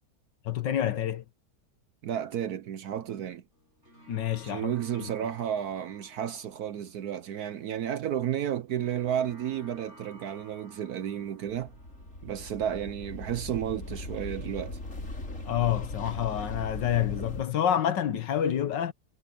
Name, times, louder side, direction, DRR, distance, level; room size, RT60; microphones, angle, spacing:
voice 1, 0.4-1.2 4.1-4.7 5.0-5.1 15.5-18.9, left 10 dB, 65° left, 1.7 m, -28 dB
voice 2, 2.0-3.4 4.4-11.7 12.2-14.8, right 10 dB, 65° right, 1.0 m, -32 dB
sound 1, 3.5-14.5, right 1 dB, 35° right, 7.7 m, -56 dB
sound 2, 11.5-17.4, left 1 dB, 40° left, 4.0 m, -39 dB
omnidirectional pair, 2.2 m